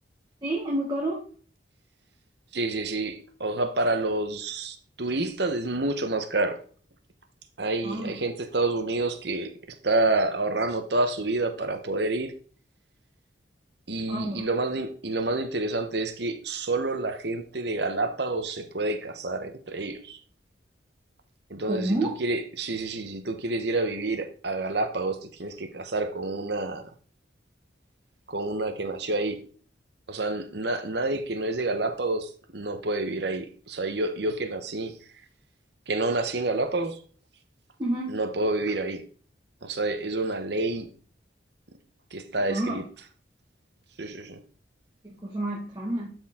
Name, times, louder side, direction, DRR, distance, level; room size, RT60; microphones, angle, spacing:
voice 1, 0.4-1.2 7.8-8.2 14.1-14.5 21.6-22.1 37.8-38.2 42.5-42.8 45.0-46.1, right 1 dB, 20° right, 1.6 m, -29 dB
voice 2, 2.5-6.6 7.6-9.5 9.8-12.3 13.9-20.2 21.5-26.9 28.3-29.4 30.1-34.9 35.9-37.0 38.1-39.0 39.6-40.9 42.1-42.8 44.0-44.4, right 2 dB, 60° right, 1.1 m, -28 dB
11.5 x 4.6 x 3.7 m
head